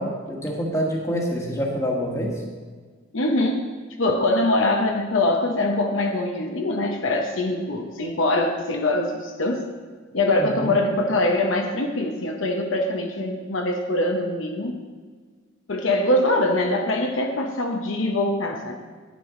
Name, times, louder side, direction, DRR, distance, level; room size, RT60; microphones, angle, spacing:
voice 1, 0.0-2.3 10.4-10.8, equal, 15° left, -1 dB, 1.4 m, -26 dB
voice 2, 3.1-3.7 4.0-9.7 10.1-14.8 15.7-18.8, left 1 dB, 70° left, 3 dB, 0.9 m, -23 dB
10.5 x 8.9 x 3.8 m, 1.5 s
head